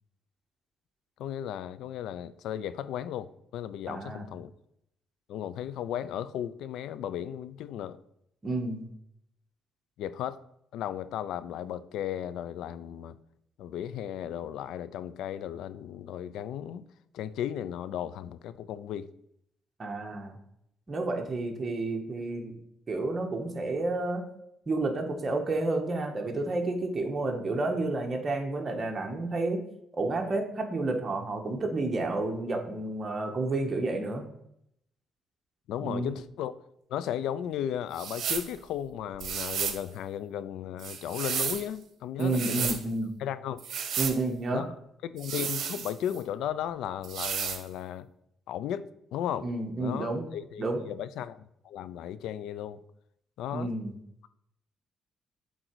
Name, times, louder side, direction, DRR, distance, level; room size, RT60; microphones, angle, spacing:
voice 1, 1.2-4.5 5.3-8.0 10.0-10.4 10.7-13.1 13.6-16.8 17.1-19.1 35.7-36.5 36.9-42.8 43.2-43.6 44.5-44.7 45.0-48.1 48.5-48.8 49.1-49.5 49.8-52.8 53.4-53.7, left 10 dB, 85° left, 0.4 m, -35 dB
voice 2, 3.9-4.3 8.4-8.9 19.8-20.3 20.9-22.5 22.9-24.2 24.7-29.6 29.9-34.3 35.8-36.1 42.2-43.1 44.0-44.7 49.4-50.3 50.6-50.8 53.5-54.0, right 2 dB, 35° right, 1.3 m, -30 dB
sound 1, 37.9-38.5 39.2-39.8 40.8-41.7 42.2-42.8 43.6-44.2 45.2-46.2 47.0-47.6, right 7 dB, 65° right, 1.0 m, -33 dB
8.0 x 3.8 x 4.6 m
cardioid pair, 90°, 0 cm